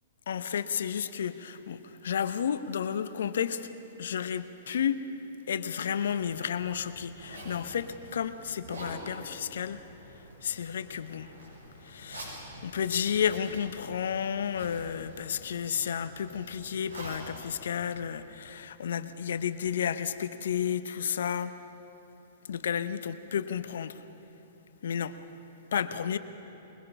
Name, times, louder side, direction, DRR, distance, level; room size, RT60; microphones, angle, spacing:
voice 1, 0.3-3.7 4.0-5.0 5.5-9.8 10.4-11.3 11.8-21.6 22.4-24.0 24.8-25.2 25.7-26.2, left 8 dB, 70° left, 12 dB, 0.9 m, -32 dB
Zipper (clothing), 6.0-18.6, right 1 dB, 85° right, 5.9 m, -47 dB
22.0 x 21.0 x 5.6 m, 3.0 s
hypercardioid pair, 115°, 0 cm